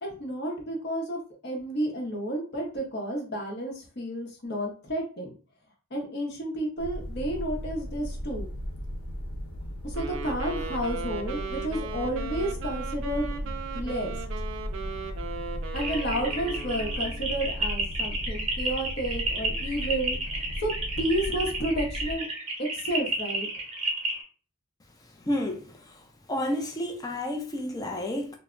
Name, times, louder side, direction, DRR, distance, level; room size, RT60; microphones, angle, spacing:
voice 1, 0.0-1.2 1.4-5.3 5.9-8.5 9.8-14.1 15.7-20.2 20.6-20.7 21.0-22.3 22.6-23.5, right 1 dB, 50° left, 0.7 m, -31 dB
sound 1, 6.8-22.2, equal, 90° left, 0.5 m, -36 dB
Wind instrument woodwind instrument, 9.9-17.4, right 5 dB, 65° right, 0.3 m, -38 dB
sound 2, 15.8-24.2, right 3 dB, 30° right, 0.7 m, -31 dB
voice 2, 25.3-26.0 26.3-28.3, left 1 dB, 15° left, 0.3 m, -30 dB
2.1 x 2.0 x 3.6 m
head